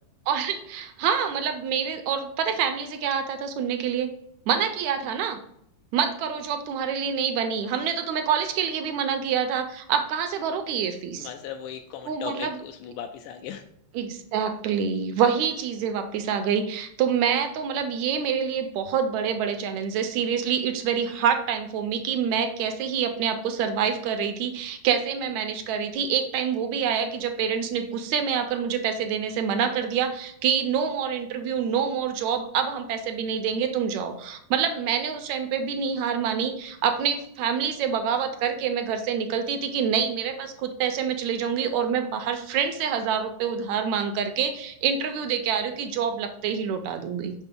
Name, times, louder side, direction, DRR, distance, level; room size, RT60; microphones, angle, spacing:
voice 1, 0.3-4.1 4.5-5.4 5.9-11.3 12.1-12.5 13.9-47.3, right 7 dB, 80° right, 7 dB, 1.8 m, -26 dB
voice 2, 11.2-13.7, left 8 dB, 85° left, 5 dB, 2.1 m, -37 dB
6.0 x 5.7 x 3.6 m, 0.73 s
omnidirectional pair, 3.6 m